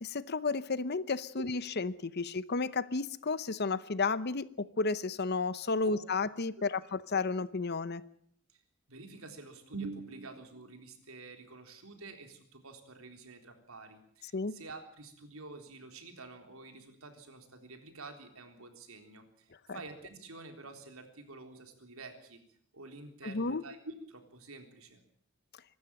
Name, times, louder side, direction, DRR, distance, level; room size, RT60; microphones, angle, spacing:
voice 1, 0.0-8.0 14.3-14.5 19.7-19.8 23.2-23.6, left 4 dB, 50° left, 17 dB, 0.8 m, -32 dB
voice 2, 8.9-22.4 22.7-25.0, right 3 dB, 80° right, 6 dB, 3.7 m, -48 dB
24.5 x 13.0 x 8.9 m, 0.65 s
head